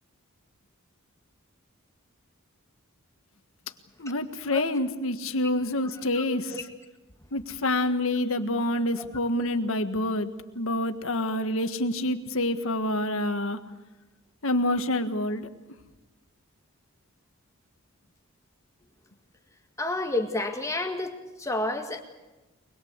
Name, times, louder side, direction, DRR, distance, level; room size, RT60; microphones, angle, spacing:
voice 1, 4.0-6.6 7.3-10.3 10.5-13.6 14.4-15.5, left 1 dB, 70° left, 8 dB, 1.6 m, -27 dB
voice 2, 5.9-6.2 6.5-6.6 9.0-9.1 19.8-22.0, left 2 dB, 15° left, 4 dB, 1.8 m, -30 dB
24.0 x 21.0 x 8.1 m, 1.1 s
head